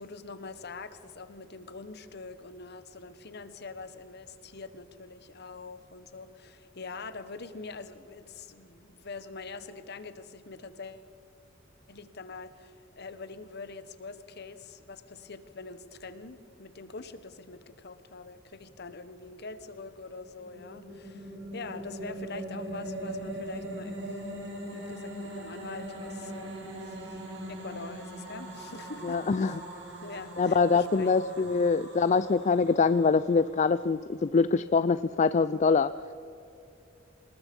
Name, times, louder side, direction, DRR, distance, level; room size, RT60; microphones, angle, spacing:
voice 1, 0.0-11.1 11.9-24.2 24.7-27.2 27.5-29.6 30.0-31.7 32.1-32.3, left 3 dB, 60° left, 12 dB, 1.3 m, -44 dB
sound 1, 20.2-33.6, right 1 dB, 65° right, 5.4 m, -41 dB
voice 2, 29.0-29.6 30.4-35.9, left 4 dB, 40° left, 14 dB, 0.4 m, -24 dB
26.0 x 20.0 x 5.4 m, 2.9 s
head